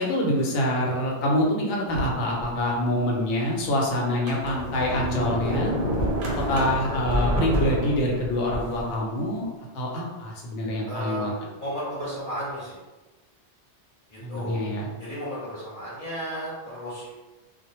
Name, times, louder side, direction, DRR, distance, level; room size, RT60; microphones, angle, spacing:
voice 1, 0.0-5.7 6.4-9.5 9.7-11.3 14.2-14.9, left 1 dB, 80° left, -2 dB, 0.9 m, -25 dB
Sliding door, 1.9-2.8 3.4-3.5 4.1-8.9, right 1 dB, 70° right, 0.3 m, -28 dB
voice 2, 10.9-12.8 14.3-14.6 15.0-17.1, equal, 50° left, -10 dB, 0.8 m, -34 dB
2.1 x 2.0 x 2.9 m, 1.2 s
omnidirectional pair, 1.2 m